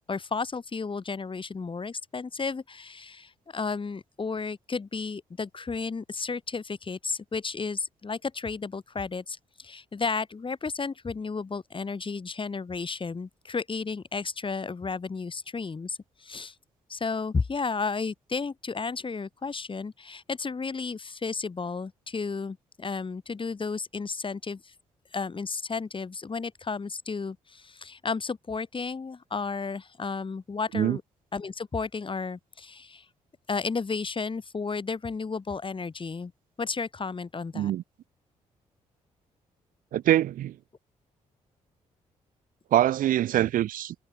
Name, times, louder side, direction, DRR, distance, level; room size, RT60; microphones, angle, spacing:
voice 1, 0.0-16.5 16.9-24.7 25.1-31.0 31.3-33.1 33.5-36.3 36.6-37.7, left 4 dB, 35° left, 6.4 m, -33 dB
voice 2, 39.9-40.5 42.7-43.9, right 13 dB, 80° right, 2.8 m, -24 dB
supercardioid pair, 60°, 14 cm